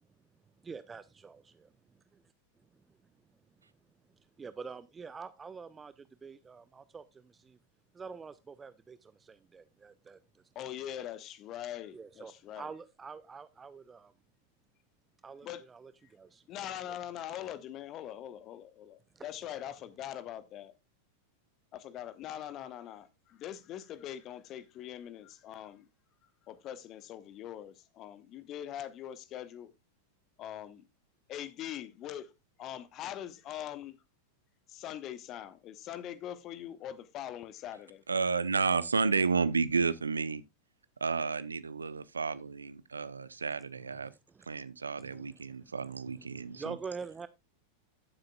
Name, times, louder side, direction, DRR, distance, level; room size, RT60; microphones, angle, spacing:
voice 1, 0.6-1.7 4.4-7.6 7.9-10.4 11.9-14.1 15.2-16.4 16.9-17.0 19.2-19.3 44.3-44.4 45.0-45.7 46.1-47.3, right 5 dB, 15° right, 0.4 m, -46 dB
voice 2, 10.5-12.7 15.4-15.7 16.5-20.7 21.7-25.8 26.4-29.7 30.4-30.8 31.3-32.3 32.6-34.0 34.7-38.0, left 11 dB, 35° left, 1.0 m, -42 dB
voice 3, 38.1-40.4 41.0-44.1 44.5-46.8, right 4 dB, 75° right, 0.7 m, -31 dB
14.5 x 7.7 x 2.3 m
figure-of-eight pair, 90°, 0 cm